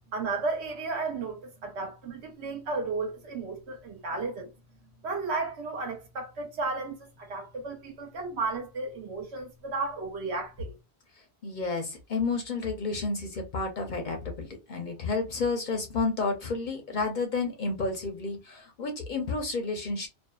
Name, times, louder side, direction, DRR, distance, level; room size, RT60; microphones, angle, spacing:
voice 1, 0.1-4.5 5.0-10.7, right 3 dB, 80° right, 1.1 m, -33 dB
voice 2, 11.4-20.1, left 3 dB, 55° left, 0.6 m, -31 dB
2.5 x 2.3 x 2.2 m
omnidirectional pair, 1.1 m